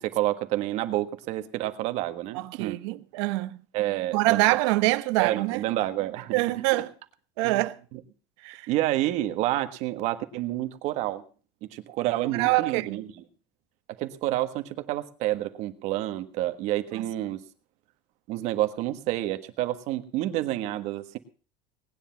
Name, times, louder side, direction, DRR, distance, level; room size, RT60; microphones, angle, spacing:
voice 1, 0.0-2.8 3.7-4.6 5.2-6.4 7.4-7.6 7.9-8.0 8.7-11.2 11.6-13.2 14.0-17.4 18.3-21.2, right 15 dB, 50° right, 1.5 m, -29 dB
voice 2, 2.3-3.6 4.1-5.6 6.3-6.9 7.4-7.8 8.4-8.7 12.3-13.0 16.9-17.1, right 20 dB, 85° right, 1.0 m, -25 dB
19.0 x 10.0 x 5.8 m
cardioid pair, 165°, 14 cm